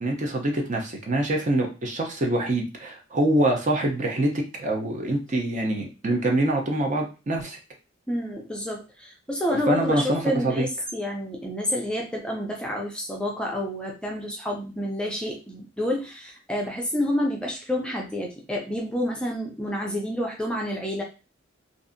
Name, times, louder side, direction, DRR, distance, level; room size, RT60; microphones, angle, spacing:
voice 1, 0.0-7.6 9.7-10.7, right 1 dB, 40° right, 2 dB, 0.6 m, -25 dB
voice 2, 8.1-21.0, equal, 5° left, -1 dB, 0.4 m, -29 dB
2.6 x 2.4 x 2.5 m, 0.31 s
head